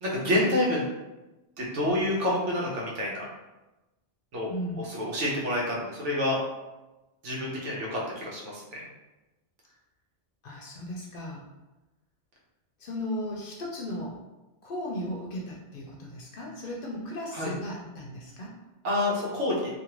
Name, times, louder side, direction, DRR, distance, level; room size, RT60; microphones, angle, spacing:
voice 1, 0.0-0.8 1.6-3.2 4.3-4.5 4.9-6.4 7.2-8.6 17.3-17.5 18.8-19.6, left 1 dB, 80° right, -4 dB, 1.1 m, -28 dB
voice 2, 4.5-4.9 10.4-11.4 12.8-14.2 14.6-18.5, left 1 dB, 60° left, -2 dB, 0.6 m, -36 dB
2.5 x 2.5 x 3.0 m, 1.0 s
omnidirectional pair, 1.2 m